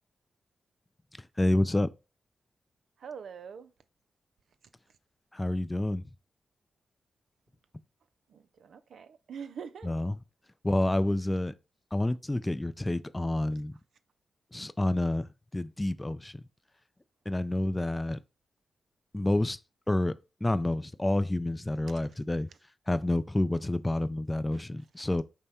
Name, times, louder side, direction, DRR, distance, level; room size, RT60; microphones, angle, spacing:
voice 1, 1.4-1.9 5.3-6.0 9.8-10.2 10.6-11.5 11.9-13.7 14.5-16.4 17.3-18.2 19.1-19.6 19.9-20.1 20.4-22.5 22.9-25.2, left 1 dB, 20° left, 0.4 m, -28 dB
voice 2, 3.0-3.7 8.3-9.9 24.5-24.8, right 6 dB, 75° right, 0.4 m, -44 dB
5.4 x 2.1 x 4.3 m
supercardioid pair, 40°, 0 cm